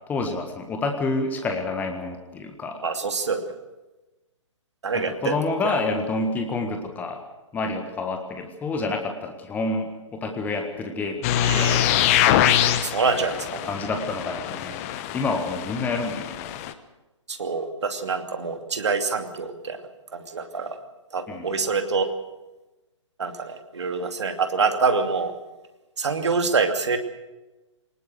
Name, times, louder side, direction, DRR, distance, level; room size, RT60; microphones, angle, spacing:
voice 1, 0.1-2.8 4.9-7.2 7.5-12.0 13.7-14.8 15.1-16.4 21.3-21.5, left 3 dB, 10° left, 5 dB, 1.6 m, -28 dB
voice 2, 2.8-3.4 4.8-5.8 11.4-11.9 12.8-13.7 17.3-19.8 20.1-20.8 21.1-22.1 23.2-25.3 26.0-27.0, right 4 dB, 65° right, 6 dB, 2.7 m, -26 dB
sound 1, 11.2-16.7, left 11 dB, 30° left, 1.1 m, -24 dB
23.0 x 20.0 x 6.6 m, 1.1 s
figure-of-eight pair, 130°, 16 cm